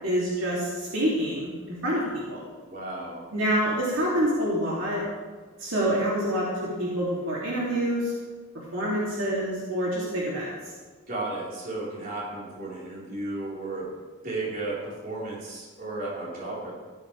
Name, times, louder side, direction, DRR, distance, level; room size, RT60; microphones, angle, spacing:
voice 1, 0.0-2.4 3.3-5.0 5.6-8.1 8.7-10.5, equal, 70° right, -6 dB, 2.9 m, -27 dB
voice 2, 2.7-3.3 11.1-13.9 14.2-16.7, right 2 dB, 45° right, -6 dB, 4.5 m, -34 dB
15.5 x 12.5 x 3.4 m, 1.4 s
head